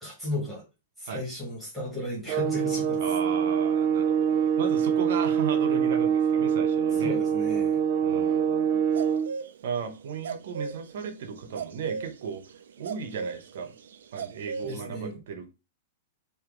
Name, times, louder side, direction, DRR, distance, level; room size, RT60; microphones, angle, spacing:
voice 1, 0.0-0.6 1.0-3.0 7.0-7.8 14.6-15.2, left 1 dB, ahead, 1.9 m, -34 dB
sound 1, 2.3-9.3, right 8 dB, 30° right, 0.4 m, -25 dB
voice 2, 3.0-7.2 8.0-8.8 9.6-12.4 12.8-13.7 14.1-15.5, right 6 dB, 55° right, 1.0 m, -35 dB
sound 2, 9.0-9.6 9.8-9.9 10.1-14.8, right 5 dB, 85° right, 0.6 m, -36 dB
4.8 x 2.8 x 3.7 m
supercardioid pair, 175°, 0 cm